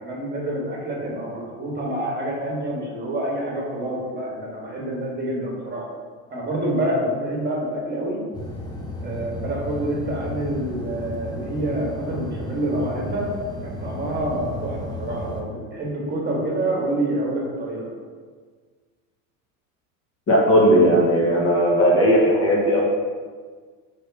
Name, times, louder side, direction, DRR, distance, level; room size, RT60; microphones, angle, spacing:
voice 1, 0.0-5.9 6.3-8.2 9.0-13.3 13.6-17.9, right 1 dB, 25° right, -3 dB, 1.2 m, -27 dB
sound 1, 8.3-15.4, left 1 dB, 10° left, 0.4 m, -33 dB
voice 2, 20.3-22.8, equal, 35° left, -2 dB, 0.9 m, -17 dB
3.4 x 2.8 x 4.5 m, 1.5 s
supercardioid pair, 105°, 40 cm